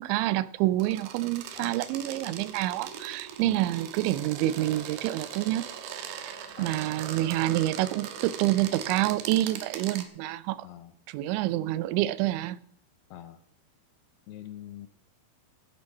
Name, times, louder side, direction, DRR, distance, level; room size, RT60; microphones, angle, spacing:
voice 1, 0.0-5.6 6.2-10.7 11.1-12.6, right 15 dB, 90° right, 3.0 m, -28 dB
sound 1, 0.8-10.1, right 8 dB, 70° right, 2.8 m, -40 dB
voice 2, 10.6-10.9 13.1-13.4 14.3-14.9, left 12 dB, 75° left, 2.5 m, -44 dB
16.0 x 8.8 x 5.3 m
omnidirectional pair, 5.2 m